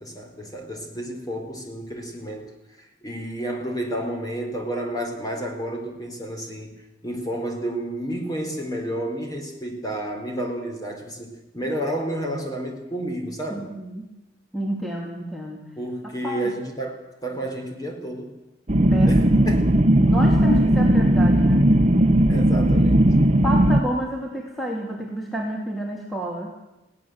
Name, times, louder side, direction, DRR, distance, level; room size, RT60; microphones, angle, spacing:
voice 1, 0.0-2.5 2.8-6.7 7.0-13.7 15.8-18.3 19.1-19.7 22.3-23.1, right 1 dB, 20° left, 3 dB, 4.1 m, -31 dB
voice 2, 13.5-14.1 14.5-15.6 16.2-16.4 18.9-19.2 20.0-21.8 23.4-26.5, equal, ahead, -2 dB, 2.7 m, -29 dB
sound 1, 18.7-23.8, right 1 dB, 35° right, 0.9 m, -17 dB
21.0 x 17.0 x 8.0 m, 0.99 s
head